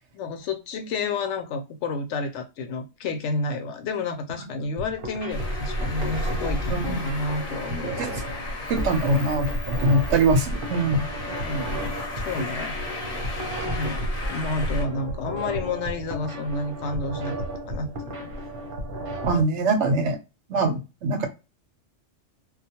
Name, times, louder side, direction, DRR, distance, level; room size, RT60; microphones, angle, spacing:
voice 1, 0.1-8.1 11.3-12.7 13.6-17.3 17.7-18.3, left 3 dB, 85° left, 7 dB, 0.9 m, -30 dB
sound 1, 4.6-19.4, right 1 dB, 55° right, 0.9 m, -34 dB
Traffic noise roadway noise, 5.3-14.8, left 1 dB, 40° left, 0.7 m, -32 dB
voice 2, 7.8-8.1 8.7-11.1 19.2-20.2 20.5-21.3, right 2 dB, 80° right, 6 dB, 1.0 m, -23 dB
2.3 x 2.2 x 2.8 m, 0.27 s
omnidirectional pair, 1.2 m